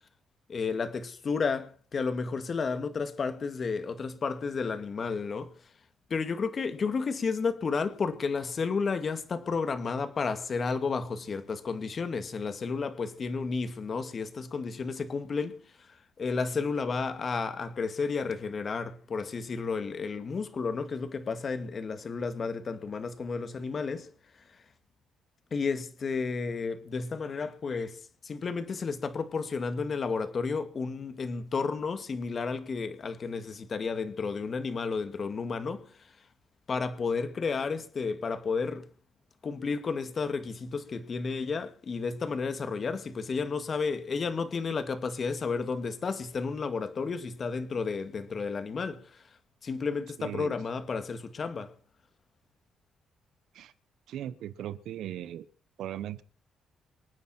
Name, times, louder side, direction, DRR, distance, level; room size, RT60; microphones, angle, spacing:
voice 1, 0.5-5.7 6.1-24.1 24.3-24.7 25.5-36.3 36.7-38.9 39.4-51.7, left 4 dB, 45° left, 2.3 m, -32 dB
voice 2, 50.2-50.6 53.5-53.7 54.1-55.4 55.8-56.2, right 11 dB, 80° right, 1.1 m, -38 dB
26.5 x 9.6 x 4.5 m
cardioid pair, 90°, 0 cm